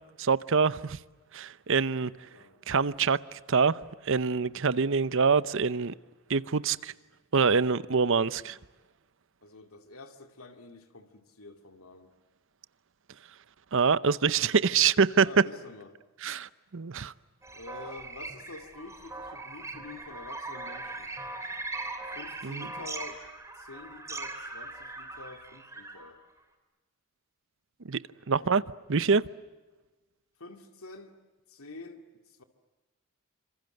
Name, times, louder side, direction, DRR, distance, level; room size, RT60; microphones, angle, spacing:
voice 1, 0.2-1.0 1.3-2.1 2.7-5.9 6.3-6.9 7.3-8.6 13.7-15.3 16.2-17.1 22.4-22.7 27.8-28.0 28.3-28.6 28.9-29.3, right 5 dB, 60° right, 0.8 m, -25 dB
voice 2, 2.2-2.6 9.4-12.1 15.2-16.0 17.5-21.1 22.1-23.2 23.5-26.2 28.3-28.8 30.4-31.2 31.5-32.4, left 3 dB, 80° left, 2.5 m, -47 dB
sound 1, 17.4-26.1, right 2 dB, 15° right, 3.3 m, -40 dB
27.0 x 26.0 x 7.9 m
head